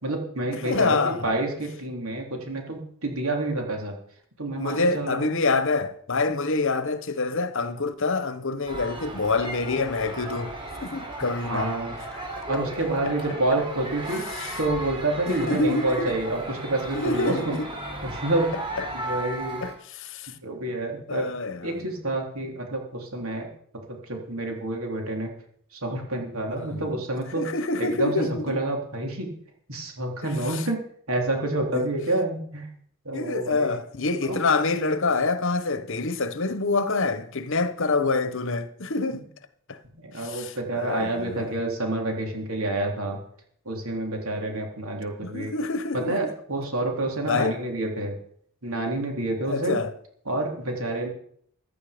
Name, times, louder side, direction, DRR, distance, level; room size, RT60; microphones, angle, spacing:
voice 1, 0.0-3.9 4.4-5.4 11.5-11.9 12.5-14.3 14.6-17.4 18.0-18.5 18.9-19.6 20.4-23.5 23.9-25.3 25.7-27.5 27.8-29.3 29.7-30.8 31.1-32.7 33.1-33.8 34.2-34.4 39.9-43.2 43.7-45.5 45.9-48.2 48.6-49.8 50.3-51.1, right 2 dB, 70° right, 3.3 m, -28 dB
voice 2, 0.5-1.3 4.5-10.5 10.8-11.7 13.0-13.1 14.4-14.5 15.3-15.9 16.9-17.7 19.6-20.3 21.1-21.9 26.6-27.0 27.4-28.6 31.7-31.9 33.1-39.2 39.7-39.8 40.2-41.6 45.2-46.3 47.3-47.5 49.5-49.9, left 3 dB, 60° left, 1.1 m, -26 dB
sound 1, 8.7-19.7, right 1 dB, 25° right, 3.7 m, -35 dB
15.5 x 11.5 x 5.1 m
head